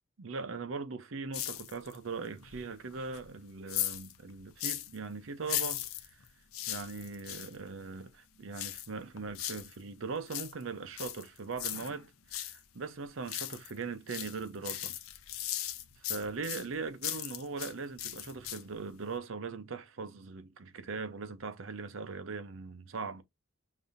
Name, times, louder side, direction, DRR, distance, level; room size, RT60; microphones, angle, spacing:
voice 1, 0.2-6.2 6.7-15.0 16.0-23.2, right 4 dB, 70° right, 0.6 m, -40 dB
sound 1, 1.3-2.1 2.4-5.0 5.4-7.5 8.5-9.8 10.1-12.6 12.9-13.8 14.1-17.7 18.0-18.8 19.1-19.2, left 13 dB, 85° left, 0.6 m, -38 dB
5.3 x 2.7 x 2.6 m
head